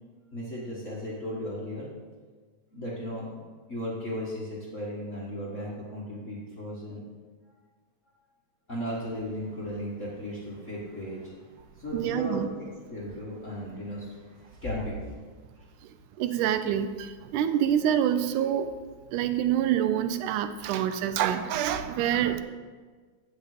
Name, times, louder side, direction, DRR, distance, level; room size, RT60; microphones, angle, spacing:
voice 1, 0.3-1.9 2.7-3.4 3.7-7.0 8.7-11.5 11.8-15.1, equal, 35° left, -6 dB, 1.2 m, -36 dB
voice 2, 11.9-12.5 15.8-18.7 19.1-22.4, right 10 dB, 90° right, 10 dB, 2.2 m, -26 dB
15.5 x 5.3 x 4.9 m, 1.5 s
omnidirectional pair, 3.5 m